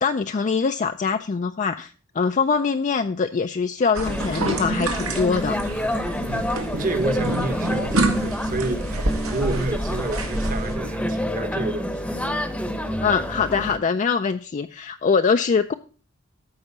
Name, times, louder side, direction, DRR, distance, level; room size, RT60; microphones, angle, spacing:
voice 1, 0.0-5.6 13.0-15.7, left 5 dB, 35° left, 0.4 m, -23 dB
sound 1, 3.9-10.7, right 2 dB, 80° right, 1.6 m, -28 dB
sound 2, 4.0-13.8, equal, 5° left, 0.9 m, -28 dB
voice 2, 6.3-12.0, right 2 dB, 40° right, 1.2 m, -30 dB
13.5 x 4.9 x 5.5 m
head